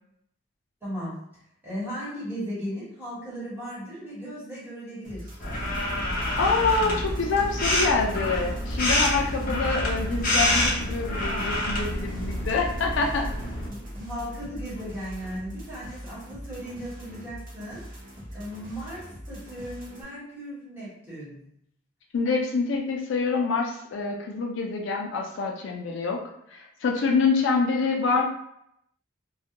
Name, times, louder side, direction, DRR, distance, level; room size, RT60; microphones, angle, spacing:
voice 1, 0.8-1.1 1.6-5.4 6.7-7.1 9.4-9.6 13.7-17.8 18.3-21.4, equal, 10° right, -9 dB, 1.1 m, -37 dB
sound 1, 5.0-20.0, equal, 40° right, 0.8 m, -43 dB
sound 2, 5.4-13.7, left 1 dB, 45° left, 0.8 m, -27 dB
sound 3, 6.3-17.4, equal, 10° left, 0.5 m, -42 dB
voice 2, 6.4-13.3 22.1-26.2 26.5-28.2, left 4 dB, 65° left, 0 dB, 0.4 m, -26 dB
2.3 x 2.1 x 2.8 m, 0.75 s
head